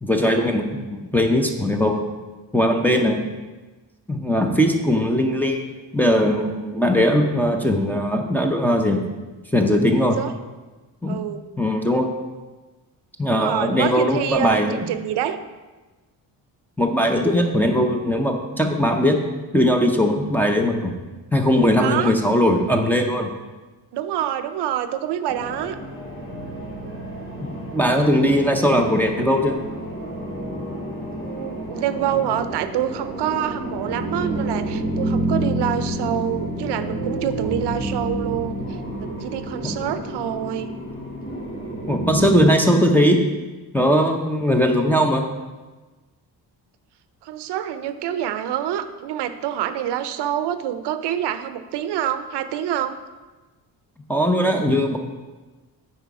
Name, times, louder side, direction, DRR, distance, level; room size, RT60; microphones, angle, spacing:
voice 1, 0.0-2.0 2.5-3.2 4.1-5.6 5.9-9.2 9.5-10.2 11.0-11.2 11.6-12.1 13.2-14.8 16.8-19.2 19.5-20.9 21.3-23.3 27.4-29.6 37.4-37.6 39.6-39.8 41.9-43.2 43.7-45.3 54.1-55.0, equal, 5° left, 0 dB, 0.6 m, -19 dB
voice 2, 10.0-10.3 11.1-11.4 13.3-15.4 21.8-22.1 23.9-25.8 31.2-38.6 38.9-40.8 47.2-53.0, right 10 dB, 80° right, 11 dB, 0.6 m, -26 dB
sound 1, 25.3-42.5, right 1 dB, 30° left, 2.4 m, -29 dB
9.1 x 4.2 x 4.7 m, 1.2 s
cardioid pair, 140°, 40 cm